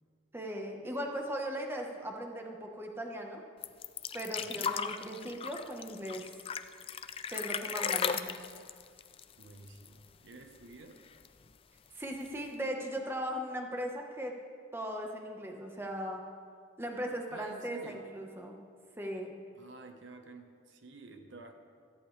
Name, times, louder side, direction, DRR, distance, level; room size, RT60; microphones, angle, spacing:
voice 1, 0.3-3.4 4.1-6.2 7.3-8.4 11.9-14.3 14.7-16.2 16.8-18.6 19.0-19.3, equal, 10° right, 1 dB, 1.1 m, -38 dB
sound 1, 3.6-10.0 10.3-10.4 10.7-11.4 12.3-12.4, left 7 dB, 30° left, 0.4 m, -36 dB
voice 2, 4.4-4.8 9.4-11.0 17.3-18.1 19.5-21.5, right 3 dB, 70° right, 5 dB, 1.1 m, -51 dB
17.0 x 14.0 x 3.3 m, 2.1 s
head